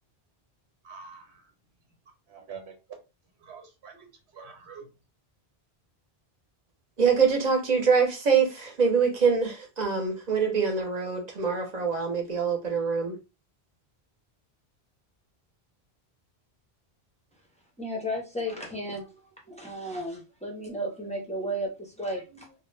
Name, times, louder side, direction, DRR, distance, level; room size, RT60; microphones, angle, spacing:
voice 1, 0.8-1.5 2.3-2.7 3.4-4.1 4.3-4.9, right 6 dB, 85° right, 1.1 m, -45 dB
voice 2, 7.0-13.2, right 5 dB, 45° right, 0.7 m, -24 dB
voice 3, 17.8-19.2 19.5-22.5, equal, 10° left, 0.5 m, -34 dB
2.1 x 2.1 x 3.1 m
omnidirectional pair, 1.1 m